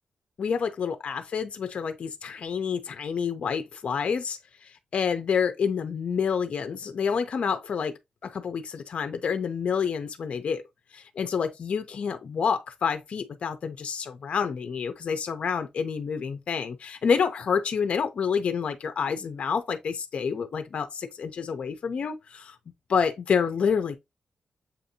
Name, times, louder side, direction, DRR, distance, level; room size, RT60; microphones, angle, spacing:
voice 1, 0.4-10.6 10.9-22.6 22.9-24.0, left 6 dB, 60° left, 0.5 m, -28 dB
7.1 x 2.6 x 2.7 m
wide cardioid pair, 120°, 2 cm